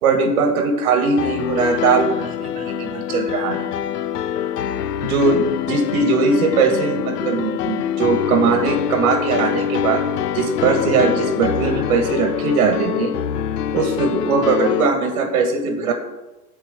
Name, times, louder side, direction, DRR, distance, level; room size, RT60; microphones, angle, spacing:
voice 1, 0.0-3.7 5.1-10.0 10.3-13.1 13.7-15.9, right 4 dB, 50° right, 5 dB, 1.6 m, -20 dB
Piano, 1.2-14.9, left 9 dB, 75° left, 0.7 m, -25 dB
9.8 x 4.6 x 7.8 m, 1.0 s
hypercardioid pair, 125°, 47 cm